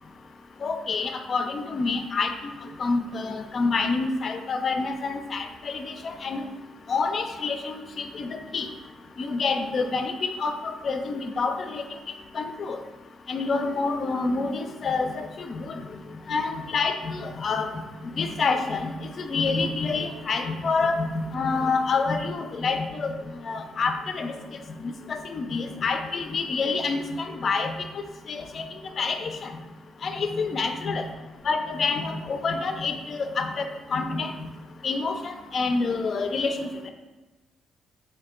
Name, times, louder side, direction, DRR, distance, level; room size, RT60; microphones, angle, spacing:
voice 1, 0.6-2.5 2.8-6.4 6.9-8.7 9.2-11.8 12.3-12.8 13.3-15.8 16.3-17.8 18.2-23.2 23.4-24.4 24.8-27.8 28.3-28.6 29.0-29.5 30.0-31.1 31.4-34.5 34.8-36.9, left 4 dB, 50° left, 6 dB, 0.4 m, -27 dB
3.5 x 2.6 x 3.7 m, 1.2 s
cardioid pair, 90°, 0 cm